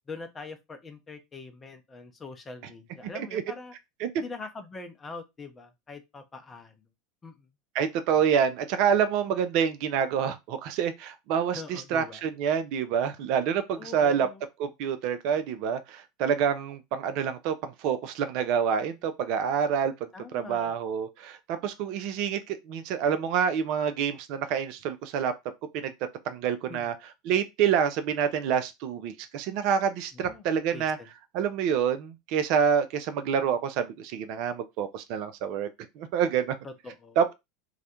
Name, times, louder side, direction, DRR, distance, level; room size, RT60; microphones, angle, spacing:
voice 1, 0.1-3.7 4.2-6.7 7.2-7.5 11.5-12.2 13.8-14.4 20.1-20.8 26.7-26.9 30.1-30.5 30.7-31.1 36.6-37.2, left 3 dB, 20° left, 0.5 m, -43 dB
voice 2, 7.7-14.3 14.6-19.9 20.3-25.3 25.7-25.9 26.3-26.9 27.3-31.0 31.3-35.7 36.0-36.6 37.2-37.3, right 7 dB, 50° right, 0.3 m, -27 dB
2.3 x 2.1 x 2.8 m
figure-of-eight pair, 75°, 0 cm